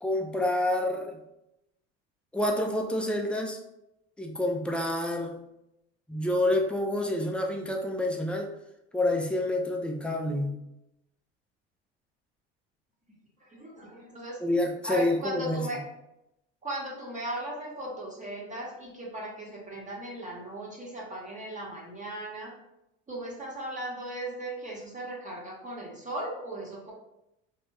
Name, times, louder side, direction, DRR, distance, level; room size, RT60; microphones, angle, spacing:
voice 1, 0.0-1.2 2.3-3.6 4.2-5.4 6.1-8.5 8.9-10.5 14.4-15.8, left 1 dB, 5° left, 2 dB, 0.4 m, -28 dB
voice 2, 13.5-14.4 14.8-15.8 16.6-22.5 23.1-26.9, right 1 dB, 25° right, -3 dB, 1.0 m, -37 dB
2.5 x 2.2 x 3.2 m, 0.86 s
hypercardioid pair, 80°, 32 cm